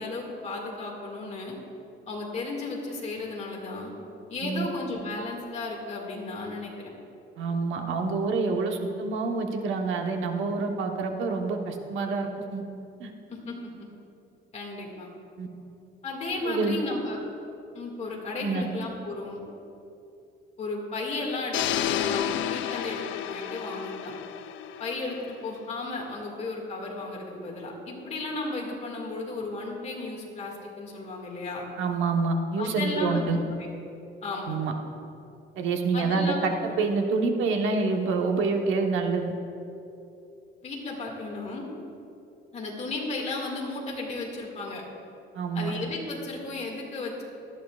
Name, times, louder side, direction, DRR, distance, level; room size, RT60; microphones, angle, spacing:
voice 1, 0.0-1.5 2.1-3.9 4.3-6.9 13.3-13.9 14.5-15.1 16.0-17.2 17.7-19.4 20.6-24.1 24.8-31.6 32.6-33.3 33.6-33.7 34.2-34.6 35.9-36.4 40.6-41.6 42.5-44.8 45.5-47.2, left 3 dB, 35° left, -1 dB, 2.1 m, -34 dB
voice 2, 7.4-12.6 13.0-13.1 15.4-15.5 16.4-16.7 18.4-18.7 31.8-33.4 34.5-34.7 35.6-39.3 45.3-45.7, right 4 dB, 85° right, 3 dB, 1.1 m, -27 dB
sound 1, 21.5-25.6, left 10 dB, 80° left, 0.5 m, -31 dB
18.0 x 13.0 x 2.4 m, 2.7 s
cardioid pair, 165°, 20 cm